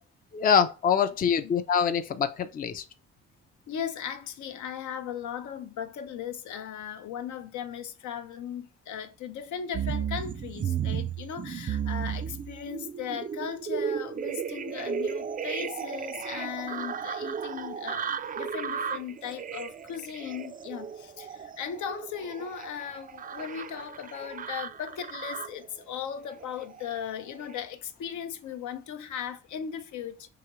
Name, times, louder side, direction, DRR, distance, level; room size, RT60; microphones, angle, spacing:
voice 1, 0.3-2.8, left 7 dB, 30° left, 0.4 m, -24 dB
voice 2, 3.7-30.3, left 8 dB, 70° left, 0.6 m, -37 dB
sound 1, 9.7-25.7 26.3-27.0 27.4-27.6, right 7 dB, 30° right, 0.4 m, -34 dB
4.8 x 2.9 x 3.0 m
cardioid pair, 90°, 30 cm